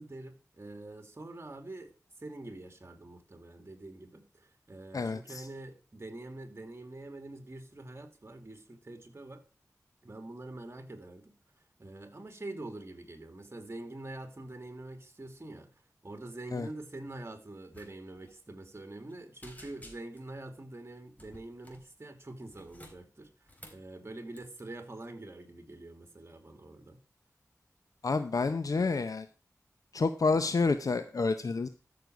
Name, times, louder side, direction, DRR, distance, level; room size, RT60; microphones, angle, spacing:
voice 1, 0.0-1.9 2.2-9.4 10.0-11.3 11.8-15.7 16.0-27.0, right 2 dB, 40° right, 2.6 m, -45 dB
voice 2, 4.9-5.4 16.5-16.7 28.0-29.3 29.9-31.7, left 4 dB, 75° left, 0.7 m, -29 dB
sound 1, 17.7-17.9 18.2-18.3 18.7-19.1 19.4-20.3 21.2-21.9 22.4-23.9 24.3-24.6, left 1 dB, 25° left, 3.8 m, -53 dB
13.5 x 6.6 x 4.7 m
wide cardioid pair, 55°, 6 cm